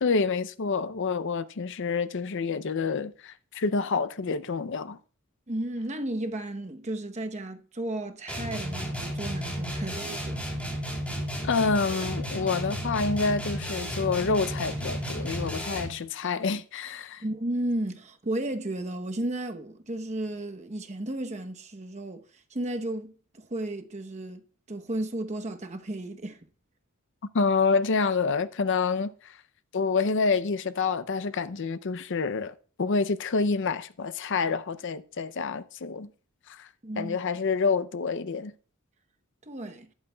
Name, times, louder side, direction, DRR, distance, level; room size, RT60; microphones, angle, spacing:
voice 1, 0.0-5.0 11.4-17.2 27.3-29.3 29.7-36.1 36.5-36.7 37.0-38.5, left 4 dB, 55° left, 0.5 m, -27 dB
voice 2, 5.5-10.4 17.2-22.2 22.5-24.4 24.7-26.4 36.8-37.2 39.5-39.9, right 1 dB, 30° right, 0.9 m, -33 dB
sound 1, 8.3-16.0, equal, 5° left, 3.3 m, -33 dB
12.5 x 11.0 x 2.3 m
head